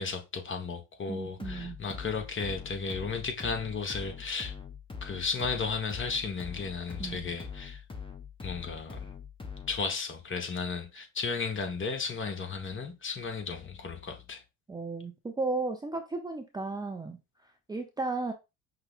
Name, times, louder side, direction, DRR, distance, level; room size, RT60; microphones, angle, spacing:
voice 1, 0.0-4.5 5.0-7.8 8.4-9.0 9.7-14.4, left 4 dB, 30° left, 1.3 m, -34 dB
voice 2, 1.1-1.8 7.0-7.3 14.7-18.3, right 3 dB, 10° right, 0.6 m, -35 dB
sound 1, 1.4-9.9, left 6 dB, 10° left, 1.1 m, -43 dB
5.6 x 2.2 x 3.7 m
hypercardioid pair, 65°, 41 cm